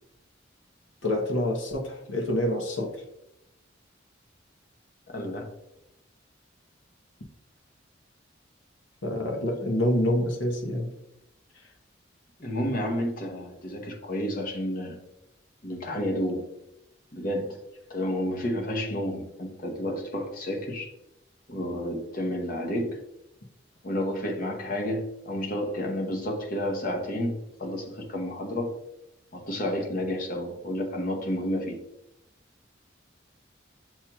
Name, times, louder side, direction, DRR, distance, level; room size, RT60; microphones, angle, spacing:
voice 1, 1.0-3.0 9.0-10.9, left 1 dB, 80° left, 2 dB, 0.9 m, -27 dB
voice 2, 5.1-5.5 12.4-15.0 15.6-16.5 17.1-17.6 17.9-20.9 21.5-23.0 23.8-28.7 29.3-31.8, left 1 dB, 45° left, 2 dB, 0.8 m, -30 dB
7.3 x 2.9 x 2.3 m, 0.83 s
head